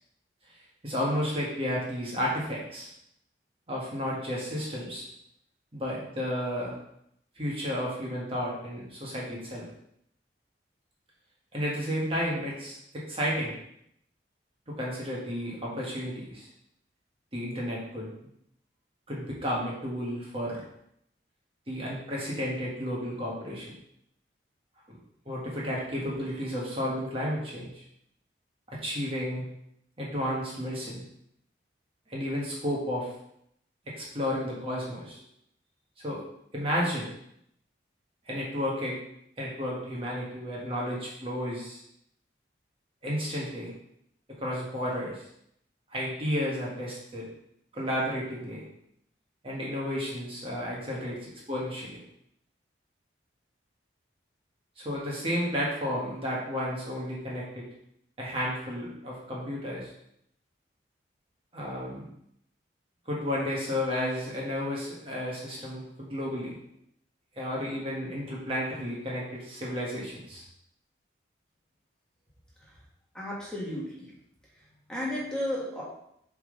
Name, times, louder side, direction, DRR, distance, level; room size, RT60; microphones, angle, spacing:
voice 1, 0.8-2.9 3.7-5.0 5.7-6.7 7.4-9.7 11.5-13.6 14.7-16.5 17.3-18.1 19.1-20.6 21.7-23.7 24.9-25.0 25.2-27.8 28.7-29.4 30.0-31.0 32.1-33.1 34.0-35.2 36.0-36.2 36.5-37.1 38.2-39.0 39.4-41.8 43.0-43.7 44.4-45.2 45.9-47.3 47.7-48.7 49.4-52.0 54.8-57.6 58.2-59.9 61.5-62.0 63.1-66.6 67.4-70.4, equal, 30° right, -4 dB, 1.4 m, -32 dB
voice 2, 73.1-74.1 74.9-75.8, left 1 dB, 5° left, -6 dB, 1.4 m, -33 dB
7.0 x 3.7 x 3.8 m, 0.74 s
head